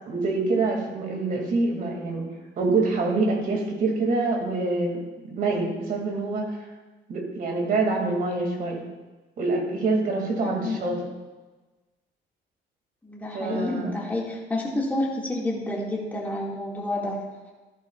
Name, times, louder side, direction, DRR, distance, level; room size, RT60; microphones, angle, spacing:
voice 1, 0.1-2.3 2.6-6.6 7.1-8.8 9.4-11.0 13.3-13.9, right 3 dB, 50° right, 0 dB, 2.5 m, -26 dB
voice 2, 10.4-10.8 13.0-17.2, left 1 dB, 10° left, -4 dB, 2.1 m, -29 dB
14.5 x 11.5 x 2.4 m, 1.2 s
cardioid pair, 170°, 19 cm